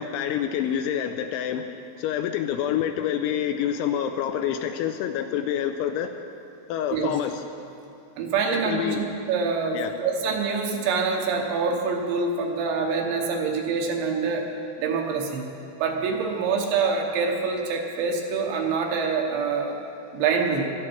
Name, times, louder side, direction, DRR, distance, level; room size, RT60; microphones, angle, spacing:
voice 1, 0.0-1.7 2.0-6.1 6.7-7.4 8.5-9.0 9.7-10.0, left 9 dB, 85° left, 6 dB, 2.8 m, -27 dB
voice 2, 8.2-14.5 14.8-15.5 15.8-19.8 20.1-20.7, right 5 dB, 75° right, 1 dB, 3.1 m, -25 dB
16.5 x 12.5 x 4.5 m, 2.6 s
omnidirectional pair, 5.7 m